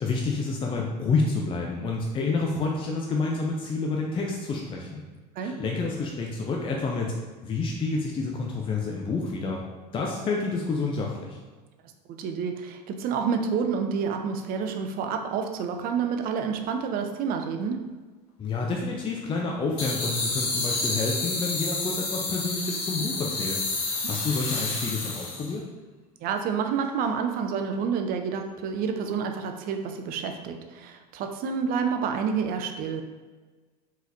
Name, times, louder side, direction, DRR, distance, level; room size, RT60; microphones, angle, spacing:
voice 1, 0.0-5.0 5.4-7.1 7.4-9.6 9.9-11.4 18.4-25.6, left 3 dB, 25° left, 0 dB, 0.5 m, -29 dB
voice 2, 12.1-17.8 26.2-33.0, right 6 dB, 45° right, 5 dB, 0.5 m, -29 dB
sound 1, 19.8-25.5, left 3 dB, 50° left, 1.1 m, -29 dB
4.1 x 3.9 x 2.6 m, 1.3 s
figure-of-eight pair, 75°, 21 cm